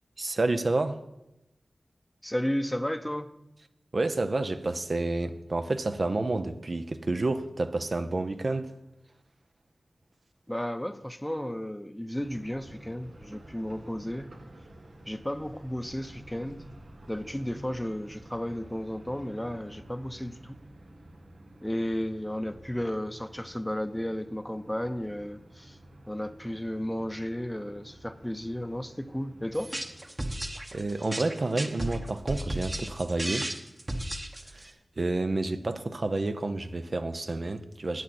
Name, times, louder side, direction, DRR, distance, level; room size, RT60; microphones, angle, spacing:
voice 1, 0.2-1.0 3.9-8.7 30.7-33.5 34.5-34.7 35.0-38.0, right 2 dB, 55° right, 0.7 m, -29 dB
voice 2, 2.2-3.4 10.5-14.3 15.1-16.6 17.1-20.6 21.6-25.8 26.1-29.7, equal, 10° left, 0.7 m, -33 dB
sound 1, 12.2-30.0, right 1 dB, 75° right, 1.3 m, -51 dB
sound 2, 29.5-34.7, right 1 dB, 30° right, 1.2 m, -34 dB
12.5 x 8.8 x 4.3 m
cardioid pair, 50°, 0 cm